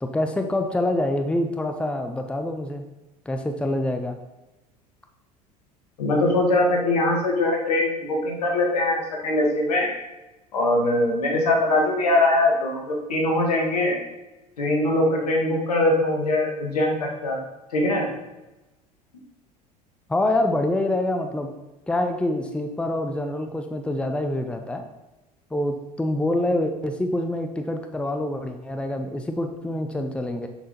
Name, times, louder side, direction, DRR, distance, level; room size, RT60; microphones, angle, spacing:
voice 1, 0.0-2.8 3.3-4.2 20.1-21.5 21.9-24.8 25.5-30.5, left 1 dB, 5° left, 5 dB, 0.7 m, -26 dB
voice 2, 6.0-9.9 10.5-14.0 14.6-17.4 17.7-18.1, left 2 dB, 70° left, 0 dB, 1.8 m, -22 dB
6.9 x 6.1 x 4.3 m, 1.0 s
figure-of-eight pair, 70°, 21 cm